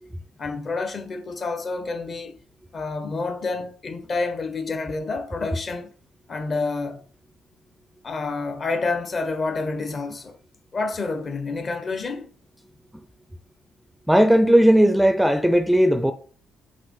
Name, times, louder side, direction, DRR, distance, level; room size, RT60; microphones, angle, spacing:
voice 1, 0.4-2.4 2.7-5.9 6.3-7.0 8.0-10.4 10.7-12.3, left 3 dB, 40° left, 1.2 m, -28 dB
voice 2, 14.1-16.1, equal, 5° right, 0.5 m, -16 dB
5.8 x 3.1 x 5.5 m
cardioid pair, 90°, 0 cm